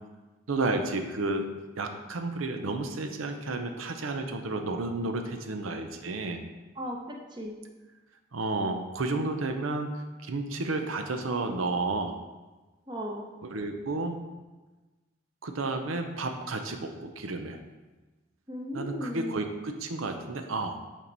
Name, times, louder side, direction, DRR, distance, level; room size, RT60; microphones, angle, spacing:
voice 1, 0.5-1.5 1.8-6.4 8.3-12.2 13.4-14.2 15.4-17.6 18.7-20.8, right 2 dB, 90° right, 6 dB, 0.7 m, -31 dB
voice 2, 6.8-7.5 12.9-13.3 18.5-19.4, equal, 20° right, 0 dB, 0.8 m, -36 dB
9.1 x 4.5 x 4.0 m, 1.2 s
head